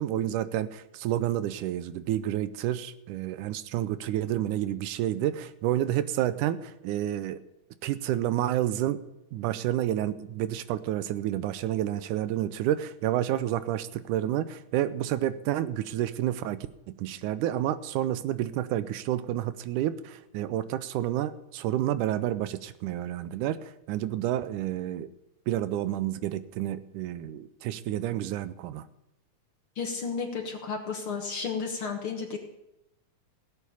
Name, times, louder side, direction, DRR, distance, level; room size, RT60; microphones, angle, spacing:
voice 1, 0.0-7.4 7.8-9.0 9.3-16.7 17.0-25.1 25.5-28.9, right 12 dB, 85° right, 14 dB, 2.2 m, -29 dB
voice 2, 29.8-32.4, left 5 dB, 55° left, 4 dB, 1.7 m, -33 dB
17.0 x 8.4 x 7.0 m, 0.89 s
omnidirectional pair, 3.6 m